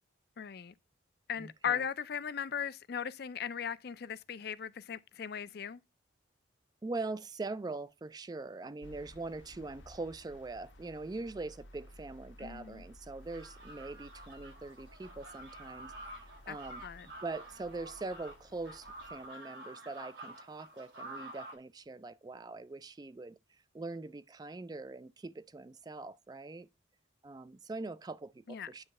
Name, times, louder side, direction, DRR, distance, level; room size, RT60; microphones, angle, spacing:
voice 1, 0.4-0.7 1.3-5.8 12.4-12.8 16.5-16.6 16.8-17.1 28.5-28.7, left 8 dB, 55° left, 0.4 m, -38 dB
voice 2, 1.4-1.9 6.8-16.8 17.2-23.4 23.7-26.7 27.2-28.9, right 3 dB, 20° right, 0.3 m, -42 dB
sound 1, 8.8-19.3, left 1 dB, 85° left, 1.1 m, -56 dB
sound 2, 13.2-21.6, right 1 dB, 90° right, 3.4 m, -49 dB
9.6 x 3.2 x 5.3 m
head